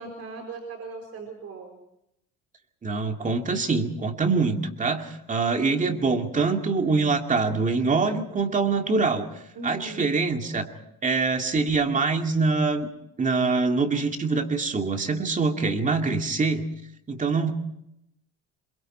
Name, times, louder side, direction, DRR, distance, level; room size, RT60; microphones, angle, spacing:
voice 1, 0.0-1.8 5.4-6.0 9.6-10.1, right 3 dB, 55° right, 2 dB, 4.3 m, -39 dB
voice 2, 2.8-10.7 11.0-12.9 13.2-16.7 17.1-17.5, right 4 dB, 25° right, 5 dB, 2.3 m, -24 dB
27.0 x 22.5 x 4.5 m, 0.80 s
cardioid pair, 115°, 31 cm